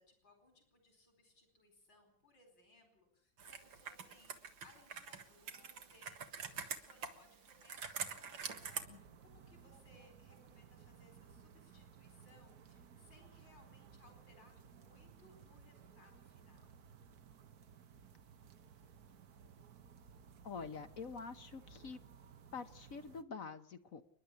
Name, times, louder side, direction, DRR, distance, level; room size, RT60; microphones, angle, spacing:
voice 1, 0.0-16.7, left 2 dB, 75° left, 5 dB, 5.4 m, -66 dB
Computer keyboard, 3.4-8.8, right 6 dB, 90° right, 2.4 m, -46 dB
sound 1, 8.5-23.2, right 7 dB, 55° right, 1.6 m, -59 dB
voice 2, 20.4-22.0 22.5-24.0, left 5 dB, 50° left, 10 dB, 1.3 m, -46 dB
29.5 x 11.0 x 8.4 m, 0.67 s
omnidirectional pair, 2.0 m